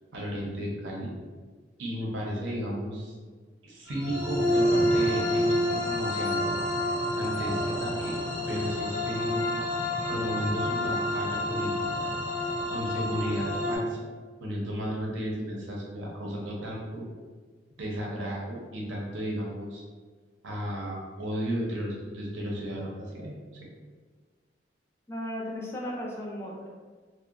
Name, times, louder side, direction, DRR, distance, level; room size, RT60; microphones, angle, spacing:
voice 1, 0.1-1.1 1.8-3.1 3.6-6.5 7.2-8.1 8.5-9.7 10.1-11.7 12.0-12.1 12.7-14.1 14.4-17.0 17.8-19.8 20.4-23.7, equal, 85° right, -3 dB, 0.7 m, -34 dB
sound 1, 3.9-13.8, left 1 dB, 50° left, 0.8 m, -28 dB
voice 2, 25.1-26.7, left 1 dB, 15° left, -4 dB, 0.4 m, -35 dB
2.8 x 2.1 x 2.4 m, 1.5 s
head